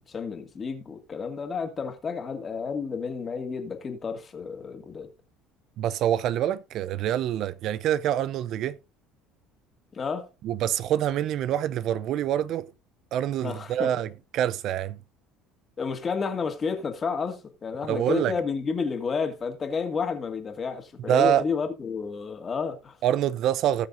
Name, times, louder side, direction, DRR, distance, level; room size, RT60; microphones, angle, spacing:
voice 1, 0.0-5.1 9.9-10.3 13.4-13.9 15.8-23.0, left 5 dB, 25° left, 2.3 m, -31 dB
voice 2, 5.8-8.8 10.4-12.7 13.1-15.0 17.9-18.3 21.1-21.4 23.0-23.9, right 11 dB, 55° right, 0.6 m, -26 dB
19.0 x 6.3 x 2.6 m
cardioid pair, 130°, 0 cm